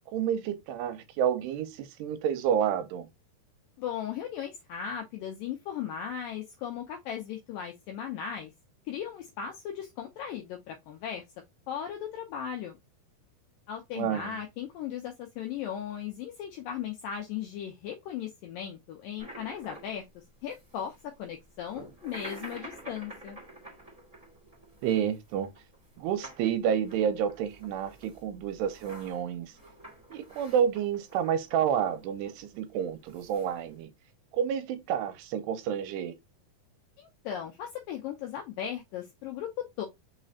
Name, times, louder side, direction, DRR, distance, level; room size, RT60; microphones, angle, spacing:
voice 1, 0.1-3.1 14.0-14.4 24.8-25.5 26.0-29.5 30.1-33.9 34.3-36.2, right 8 dB, 90° right, 2.7 m, -29 dB
voice 2, 3.8-8.5 8.9-11.2 11.7-12.8 13.7-23.4 37.0-39.9, left 9 dB, 90° left, 2.0 m, -37 dB
sound 1, 19.2-33.8, right 1 dB, 50° right, 0.4 m, -50 dB
6.0 x 3.2 x 2.7 m
omnidirectional pair, 4.8 m